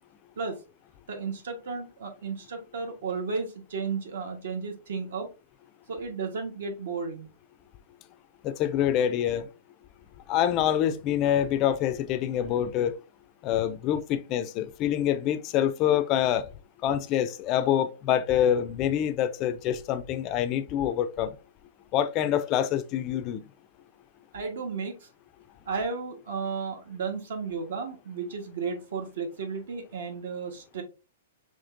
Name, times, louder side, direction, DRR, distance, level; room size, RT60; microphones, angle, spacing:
voice 1, 1.1-5.3 5.9-7.3 24.3-25.1 25.7-30.8, right 5 dB, 70° right, 1.3 m, -33 dB
voice 2, 8.4-9.5 10.3-13.0 13.4-16.5 16.8-21.3 21.9-23.4, left 10 dB, 30° left, 0.3 m, -26 dB
5.0 x 3.1 x 2.5 m
hypercardioid pair, 165°, 0 cm